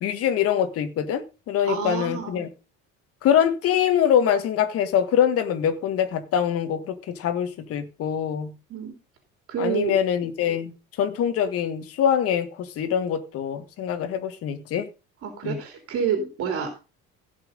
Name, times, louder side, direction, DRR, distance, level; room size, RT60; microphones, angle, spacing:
voice 1, 0.0-2.5 3.2-8.5 9.6-14.9 15.4-15.6, left 9 dB, 50° left, 1.8 m, -24 dB
voice 2, 1.6-2.4 8.7-8.9 9.5-9.9 15.2-16.8, right 7 dB, 50° right, 3.3 m, -28 dB
16.5 x 6.0 x 5.2 m
cardioid pair, 155°, 29 cm